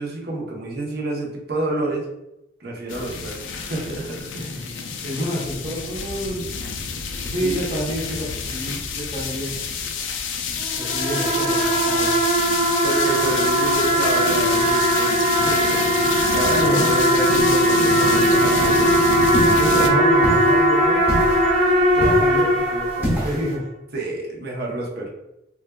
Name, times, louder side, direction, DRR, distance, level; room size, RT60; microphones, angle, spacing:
voice 1, 0.0-2.1 2.6-4.3 7.2-7.6 12.8-19.0 19.6-19.7 23.9-25.1, right 2 dB, 55° right, -2 dB, 0.8 m, -29 dB
sound 1, 2.9-19.9, left 5 dB, 80° left, 0.4 m, -28 dB
voice 2, 4.3-6.4 7.3-9.5 10.8-12.1 16.4-17.0 19.6-21.0 21.9-23.6, equal, 35° right, -7 dB, 1.1 m, -28 dB
sound 2, 10.6-23.4, right 1 dB, 80° right, 1.3 m, -19 dB
sound 3, 18.5-23.5, equal, 10° right, 1.0 m, -29 dB
4.2 x 2.3 x 2.2 m, 0.89 s
head